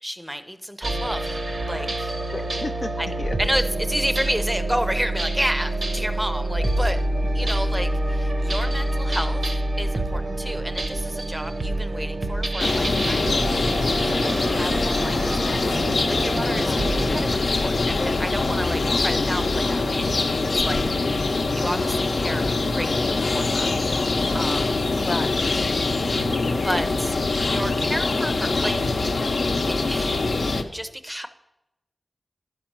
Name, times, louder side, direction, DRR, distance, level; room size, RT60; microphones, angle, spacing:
voice 1, 0.0-2.1 3.0-7.0 7.3-13.4 13.9-15.7 16.1-20.4 20.6-20.8 21.5-23.7 24.3-24.8 26.6-27.1 27.4-29.2 29.7-30.4 30.7-31.3, equal, 5° right, 10 dB, 0.6 m, -31 dB
sound 1, 0.8-17.3, right 1 dB, 50° right, 0.8 m, -27 dB
voice 2, 2.3-2.9 3.2-3.4 10.3-10.5 14.1-14.5 16.5-17.0 21.3-21.6 25.0-26.0, left 3 dB, 50° left, 5 dB, 0.3 m, -34 dB
sound 2, 12.6-30.6, left 3 dB, 80° left, 0.7 m, -23 dB
11.5 x 5.4 x 5.9 m, 0.92 s
wide cardioid pair, 80°, 0 cm